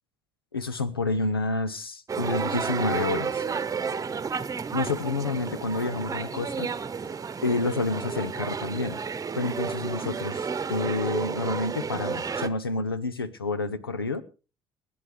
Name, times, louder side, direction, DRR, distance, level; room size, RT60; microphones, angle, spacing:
voice 1, 0.5-3.5 4.7-6.7 7.4-9.0 9.4-14.2, left 3 dB, 90° left, 15 dB, 0.7 m, -29 dB
sound 1, 2.1-12.5, right 5 dB, 30° right, 0.9 m, -31 dB
28.0 x 10.0 x 3.3 m, 0.34 s
figure-of-eight pair, 50°, 12 cm